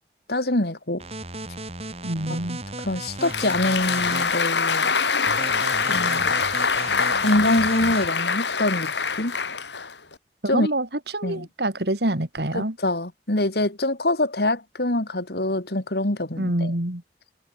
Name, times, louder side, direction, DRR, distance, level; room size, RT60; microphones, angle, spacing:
voice 1, 0.3-1.0 2.3-2.4 2.8-4.9 5.9-6.3 7.1-8.9 9.2-9.4 10.5-10.7 11.2-11.5 12.5-16.7, left 1 dB, 65° left, 2.6 m, -25 dB
sound 1, 1.0-4.4 5.3-8.1, right 2 dB, 35° right, 5.2 m, -36 dB
voice 2, 2.0-2.6 10.4-10.9 11.1-12.8 16.4-17.0, right 1 dB, 70° right, 3.0 m, -26 dB
Applause, 3.0-10.1, left 5 dB, 85° left, 5.1 m, -24 dB
head